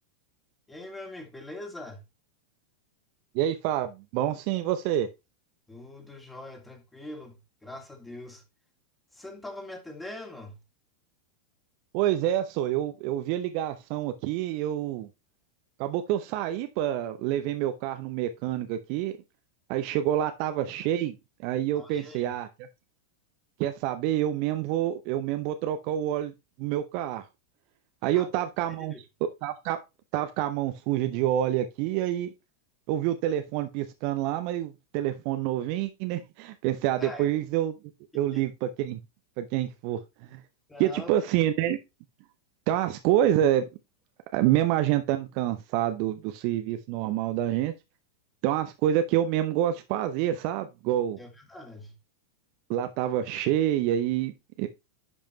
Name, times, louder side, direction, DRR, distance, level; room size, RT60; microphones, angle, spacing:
voice 1, 0.7-2.0 5.7-8.4 9.1-10.6 21.8-22.3 28.0-28.3 28.8-29.0 37.0-37.3 38.1-38.5 40.7-41.1 51.2-51.9, left 1 dB, 10° left, 2.3 m, -42 dB
voice 2, 3.3-5.1 11.9-15.1 15.8-19.1 19.7-21.1 21.4-22.5 23.6-26.3 26.6-27.2 28.0-28.9 29.4-29.8 30.1-32.3 32.9-37.8 38.1-39.0 39.4-40.0 40.3-40.4 40.8-41.8 42.7-43.6 44.3-47.7 48.4-51.2 52.7-54.7, right 12 dB, 45° right, 0.8 m, -27 dB
11.0 x 5.2 x 3.0 m
figure-of-eight pair, 90°, 0 cm